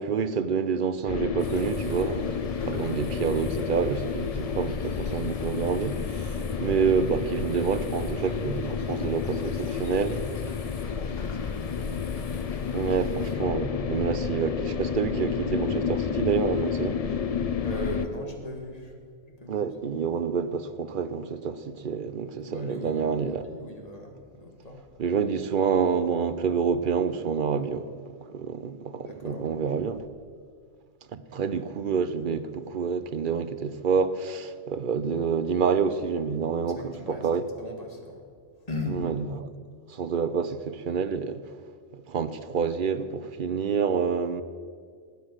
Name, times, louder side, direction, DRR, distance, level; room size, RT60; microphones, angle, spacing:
voice 1, 0.0-10.2 12.7-17.0 19.5-23.4 25.0-27.9 28.3-30.0 31.1-36.8 37.2-37.4 38.9-39.2 39.9-41.4 41.9-44.4, right 6 dB, 50° right, 0.7 m, -28 dB
sound 1, 1.1-18.1, left 6 dB, 55° left, 0.4 m, -30 dB
sound 2, 1.4-13.3, left 2 dB, 80° left, 2.4 m, -50 dB
voice 2, 6.5-6.8 9.4-10.1 10.6-12.4 17.6-19.0 19.3-20.0 22.4-24.8 29.0-29.9 36.7-37.3 37.6-38.3 38.6-39.1, left 1 dB, 30° left, 2.1 m, -39 dB
20.0 x 8.1 x 6.5 m
omnidirectional pair, 1.2 m